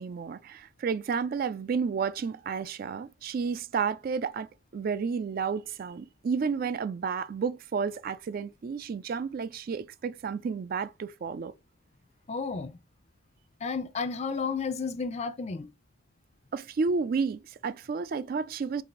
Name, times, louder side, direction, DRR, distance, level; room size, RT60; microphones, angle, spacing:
voice 1, 0.0-11.5 16.5-18.8, right 5 dB, 45° right, 0.3 m, -31 dB
voice 2, 12.3-12.8 13.6-15.7, left 5 dB, 30° left, 0.4 m, -32 dB
4.7 x 2.5 x 3.8 m
head